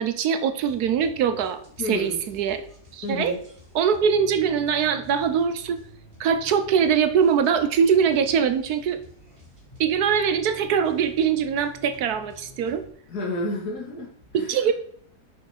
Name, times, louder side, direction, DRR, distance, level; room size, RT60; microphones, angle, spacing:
voice 1, 0.0-2.6 2.9-3.3 3.7-5.8 6.2-9.0 9.8-12.8 14.3-14.7, right 7 dB, 75° right, 10 dB, 1.2 m, -22 dB
sound 1, 0.6-12.9, left 3 dB, 30° right, 2.3 m, -49 dB
voice 2, 1.8-2.2 3.0-3.4 13.1-14.7, left 2 dB, 70° left, -1 dB, 2.3 m, -31 dB
6.2 x 6.0 x 5.0 m, 0.62 s
omnidirectional pair, 1.7 m